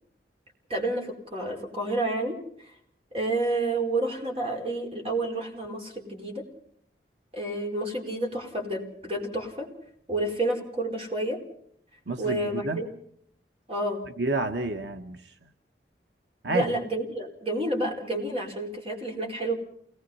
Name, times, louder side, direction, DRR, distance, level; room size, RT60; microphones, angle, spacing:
voice 1, 0.7-2.4 3.1-6.4 7.3-9.7 10.1-11.4 12.2-12.9 13.7-14.0 16.5-19.5, right 1 dB, 35° right, 1 dB, 5.0 m, -29 dB
voice 2, 12.1-12.8 14.2-15.2 16.4-16.8, right 3 dB, 85° right, 6 dB, 1.5 m, -29 dB
28.5 x 20.0 x 5.7 m, 0.64 s
head